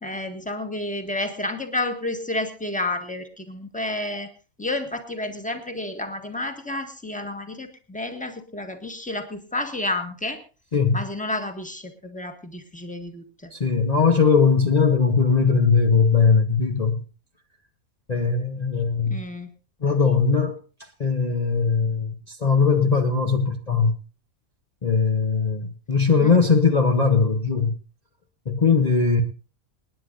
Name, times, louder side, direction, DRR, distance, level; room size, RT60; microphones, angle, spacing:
voice 1, 0.0-4.3 4.6-10.4 10.9-13.5 19.1-19.5 26.2-26.4, left 2 dB, 5° left, 1.6 m, -30 dB
voice 2, 13.5-17.0 18.1-19.2 19.8-23.9 24.8-27.7 28.5-29.2, left 5 dB, 35° left, 0.9 m, -20 dB
28.0 x 9.9 x 2.6 m
omnidirectional pair, 1.4 m